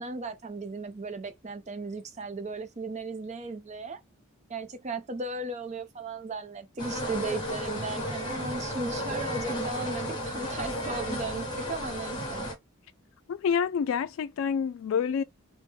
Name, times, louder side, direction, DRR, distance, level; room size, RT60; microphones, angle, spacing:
voice 1, 0.0-4.0 4.5-12.5, right 3 dB, 35° right, 0.6 m, -36 dB
sound 1, 6.8-12.5, equal, 20° left, 1.2 m, -33 dB
voice 2, 13.3-15.2, left 7 dB, 75° left, 0.3 m, -27 dB
3.0 x 2.1 x 3.3 m
head